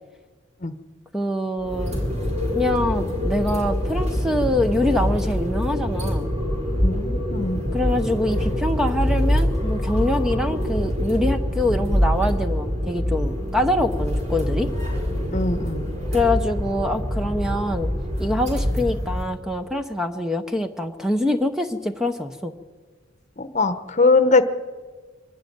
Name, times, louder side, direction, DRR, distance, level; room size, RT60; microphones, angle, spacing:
voice 1, 1.1-2.0 2.5-6.3 7.7-14.7 16.1-17.9 18.2-22.5, left 1 dB, 5° right, 7 dB, 0.8 m, -24 dB
sound 1, 1.6-19.2, equal, 35° right, 5.0 m, -24 dB
voice 2, 6.8-7.6 15.3-15.9 23.4-24.4, left 3 dB, 35° left, 11 dB, 1.0 m, -21 dB
24.0 x 12.5 x 9.3 m, 1.4 s
head